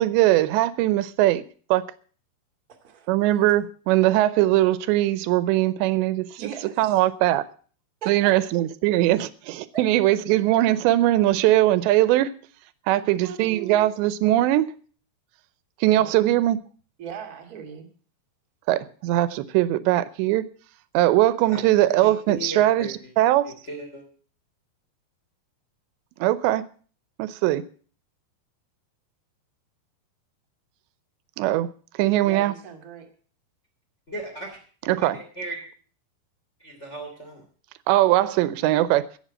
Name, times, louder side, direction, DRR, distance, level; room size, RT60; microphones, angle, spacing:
voice 1, 0.0-1.4 1.7-1.8 3.1-6.3 6.8-7.4 8.1-12.3 12.9-14.7 15.8-16.6 18.7-20.4 20.9-22.9 23.2-23.5 26.2-26.6 27.2-27.6 31.4-31.7 32.0-32.5 34.9-35.2 37.9-39.0, right 15 dB, 85° right, 3.0 m, -20 dB
voice 2, 2.7-3.6 6.4-7.0 8.0-8.4 9.7-9.9 12.8-13.9 15.9-16.1 17.0-17.9 32.2-33.1, right 8 dB, 35° right, 1.6 m, -39 dB
voice 3, 21.4-23.1 23.4-24.0 34.1-35.6 36.6-37.4, right 1 dB, 20° left, 2.6 m, -37 dB
16.5 x 7.2 x 7.3 m
omnidirectional pair, 5.0 m